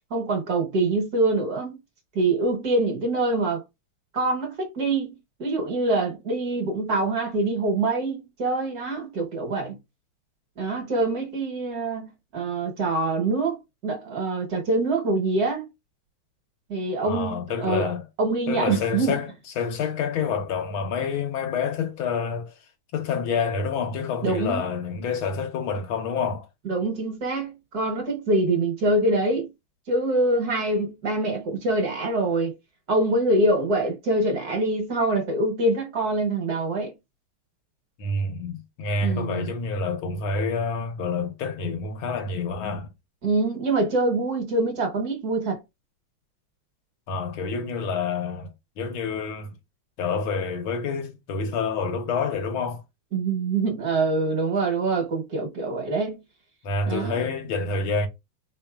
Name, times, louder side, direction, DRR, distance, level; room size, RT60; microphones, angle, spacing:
voice 1, 0.1-1.8 2.1-3.6 4.1-9.8 10.6-15.7 16.7-17.9 18.2-19.2 24.2-24.7 26.6-29.5 29.9-32.5 32.9-36.9 39.0-39.5 43.2-45.6 53.1-56.2 56.9-57.2, right 2 dB, 55° right, 1.4 m, -25 dB
voice 2, 17.0-18.1 18.5-19.3 19.6-22.6 22.9-26.5 38.0-42.9 47.1-49.5 50.0-52.8 56.6-58.1, left 4 dB, 80° left, 1.7 m, -28 dB
4.0 x 3.7 x 2.3 m
omnidirectional pair, 2.3 m